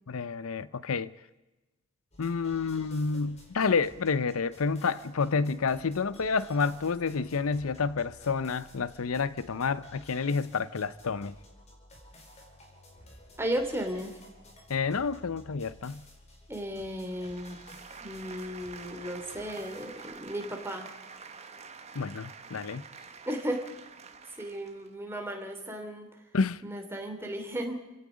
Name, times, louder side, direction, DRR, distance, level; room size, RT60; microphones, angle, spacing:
voice 1, 0.1-1.1 2.2-11.3 14.7-16.0 21.9-22.8 26.3-26.6, left 5 dB, 85° left, 0.7 m, -29 dB
sound 1, 2.1-20.1, left 1 dB, 30° left, 4.5 m, -54 dB
voice 2, 13.4-14.2 16.5-17.6 18.0-20.9 23.3-23.6 24.4-26.1 26.6-27.7, equal, 10° right, 2.9 m, -35 dB
sound 2, 16.9-24.9, right 5 dB, 30° right, 1.3 m, -48 dB
29.5 x 17.0 x 5.1 m
head